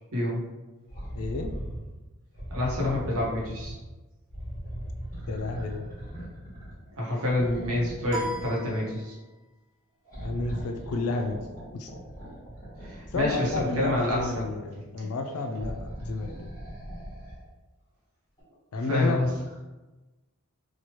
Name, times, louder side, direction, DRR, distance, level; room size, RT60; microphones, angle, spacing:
voice 1, 0.1-0.4 2.5-3.8 7.0-9.1 12.8-14.5 15.0-15.1 18.9-19.3, left 1 dB, 65° right, -3 dB, 0.9 m, -27 dB
sound 1, 0.9-1.8 2.3-3.8 4.3-6.9 7.3-8.8 10.0-14.5 15.5-17.4 18.4-18.5, equal, 15° left, 1.2 m, -39 dB
voice 2, 1.1-1.5 5.3-5.9 10.2-11.4 11.7-11.9 13.1-16.5 18.7-19.2, left 3 dB, 70° left, 4 dB, 0.4 m, -31 dB
sound 2, 8.1-9.5, right 2 dB, 30° right, 0.7 m, -37 dB
3.0 x 2.3 x 3.0 m, 1.1 s
head